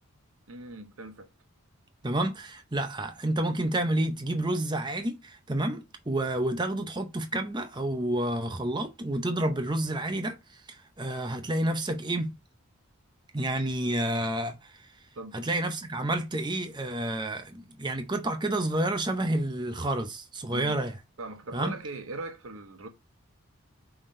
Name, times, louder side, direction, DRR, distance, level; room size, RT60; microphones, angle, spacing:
voice 1, 0.5-1.3 15.2-15.4 20.5-20.8 21.2-22.9, right 2 dB, 65° right, 0.8 m, -40 dB
voice 2, 2.0-10.4 11.0-12.3 13.3-14.7 15.3-20.9 21.5-21.7, right 1 dB, 20° right, 0.6 m, -29 dB
5.4 x 3.6 x 2.6 m
head